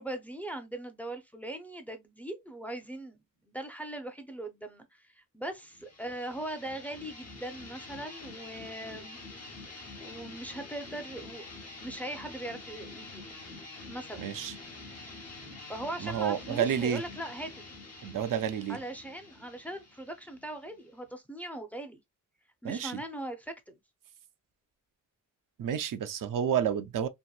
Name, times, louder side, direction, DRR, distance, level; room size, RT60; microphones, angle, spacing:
voice 1, 0.0-11.5 11.7-13.3 13.9-14.3 15.7-17.6 18.7-22.0 22.6-23.8, right 1 dB, 5° left, 0.5 m, -40 dB
sound 1, 5.7-21.1, left 2 dB, 50° left, 0.8 m, -47 dB
voice 2, 14.2-14.5 16.0-17.0 18.0-18.8 22.6-23.0 25.6-27.1, right 9 dB, 85° right, 0.5 m, -30 dB
2.9 x 2.5 x 2.2 m
wide cardioid pair, 120°, 32 cm